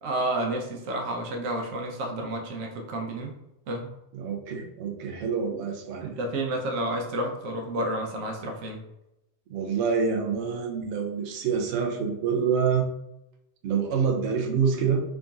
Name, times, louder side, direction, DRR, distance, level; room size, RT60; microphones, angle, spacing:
voice 1, 0.0-3.3 3.7-3.9 6.0-8.8, right 1 dB, 85° right, 2 dB, 1.1 m, -30 dB
voice 2, 4.1-6.2 9.5-12.9 13.6-15.0, right 6 dB, 70° right, 2 dB, 0.9 m, -26 dB
3.9 x 3.6 x 2.3 m, 0.89 s
omnidirectional pair, 1.3 m